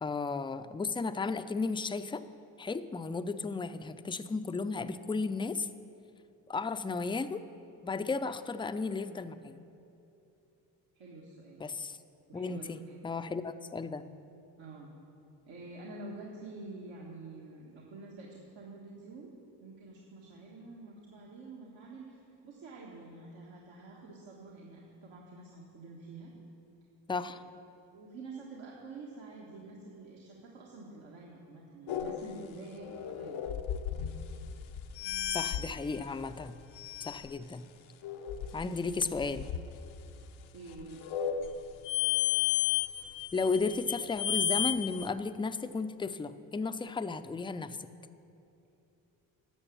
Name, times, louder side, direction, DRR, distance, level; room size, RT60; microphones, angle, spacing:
voice 1, 0.0-2.2 2.6-5.7 6.5-7.4 7.8-9.6 11.6-12.0 12.3-12.8 13.0-14.0 27.1-27.4 35.3-36.6 37.0-37.7 38.5-39.5 43.3-47.8, left 4 dB, 10° left, 11 dB, 0.5 m, -34 dB
voice 2, 11.0-11.7 12.3-13.0 14.6-14.9 15.4-19.3 19.6-26.3 27.3-27.4 27.9-33.5 40.5-41.1, right 3 dB, 70° right, -3 dB, 1.7 m, -48 dB
sound 1, 31.9-36.0 36.8-37.3 38.0-39.6 40.8-45.1, left 12 dB, 75° left, 0.8 m, -33 dB
11.5 x 6.8 x 7.2 m, 2.8 s
hypercardioid pair, 50°, 48 cm